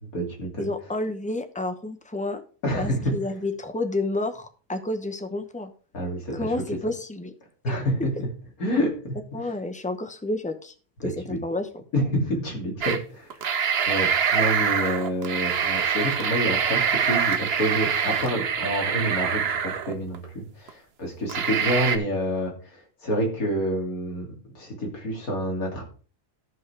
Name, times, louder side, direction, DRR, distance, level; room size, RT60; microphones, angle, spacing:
voice 1, 0.0-0.7 2.6-3.1 5.9-6.5 7.6-8.3 8.6-9.2 11.0-11.4 11.9-13.6 13.9-25.8, equal, 65° left, 0 dB, 3.2 m, -28 dB
voice 2, 0.6-2.4 2.7-5.7 6.3-7.3 7.7-7.8 9.3-10.7 11.0-11.8, left 2 dB, 5° left, 7 dB, 0.7 m, -30 dB
sound 1, 12.8-13.0 13.3-20.2 20.7-20.8 21.3-22.0, right 7 dB, 50° right, 0.9 m, -25 dB
13.0 x 5.6 x 4.7 m, 0.40 s
omnidirectional pair, 1.7 m